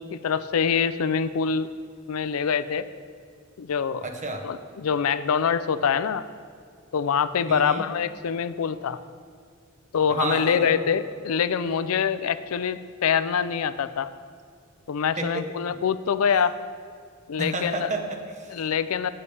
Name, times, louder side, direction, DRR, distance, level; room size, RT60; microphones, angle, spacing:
voice 1, 0.0-1.7 2.1-2.9 3.6-4.0 4.4-6.2 6.9-9.0 9.9-14.1 14.9-16.5 17.3-17.9 18.5-19.1, left 7 dB, 80° left, 14 dB, 0.4 m, -25 dB
voice 2, 4.0-4.5 7.5-7.9 10.1-10.8 15.2-15.8 17.4-18.5, right 2 dB, 35° right, 4 dB, 0.9 m, -31 dB
16.0 x 6.8 x 3.4 m, 2.1 s
head